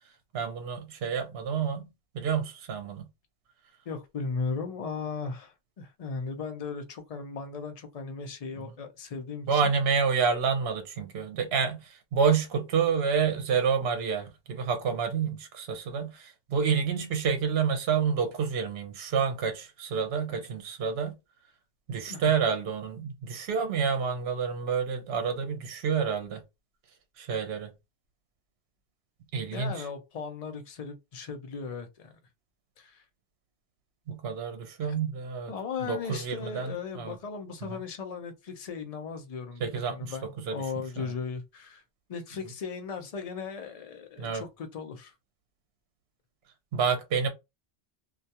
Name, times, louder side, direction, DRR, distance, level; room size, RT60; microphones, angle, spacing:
voice 1, 0.3-1.9 2.1-3.0 9.5-21.1 21.9-26.4 27.2-27.7 29.3-29.8 34.1-35.5 35.8-37.2 39.6-40.1 40.5-40.6 41.0-41.1 44.2-44.4 46.7-47.3, right 6 dB, 75° right, 0.8 m, -28 dB
voice 2, 3.9-9.7 22.1-22.3 29.5-32.1 32.8-33.0 34.8-35.0 35.5-41.8 42.1-45.1, left 5 dB, 45° left, 0.5 m, -37 dB
2.3 x 2.2 x 2.7 m
omnidirectional pair, 1.1 m